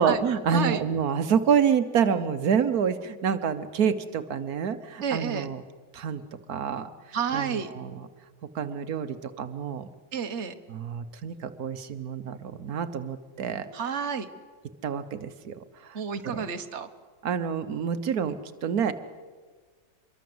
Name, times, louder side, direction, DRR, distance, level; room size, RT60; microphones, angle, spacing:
voice 1, 0.0-5.6 5.9-6.2 6.5-8.1 8.5-9.9 10.7-13.7 14.8-16.5 17.2-18.9, right 7 dB, 80° right, 10 dB, 1.5 m, -28 dB
voice 2, 5.0-5.5 7.1-7.7 10.1-10.6 13.7-14.3 15.9-16.9, right 7 dB, 50° right, 8 dB, 1.6 m, -30 dB
26.0 x 22.5 x 7.9 m, 1.5 s
omnidirectional pair, 1.6 m